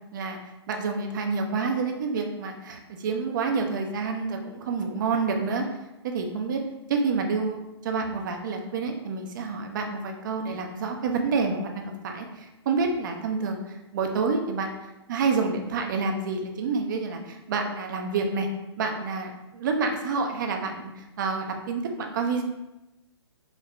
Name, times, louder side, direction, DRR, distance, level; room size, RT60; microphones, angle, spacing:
voice 1, 0.7-5.6 6.0-6.6 6.9-14.7 15.1-18.5 18.8-22.4, right 4 dB, 45° right, 3 dB, 0.6 m, -28 dB
5.1 x 2.1 x 3.2 m, 0.99 s
figure-of-eight pair, 135°, 15 cm